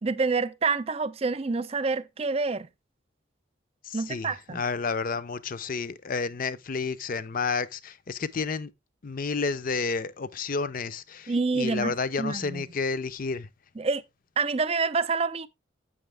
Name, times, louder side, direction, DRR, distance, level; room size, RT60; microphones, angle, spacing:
voice 1, 0.0-2.7 3.9-4.6 11.3-12.6 13.8-14.0 14.4-15.5, right 4 dB, 30° right, 0.5 m, -27 dB
voice 2, 3.9-8.7 9.0-13.5, left 4 dB, 45° left, 0.5 m, -31 dB
7.8 x 6.2 x 3.4 m
head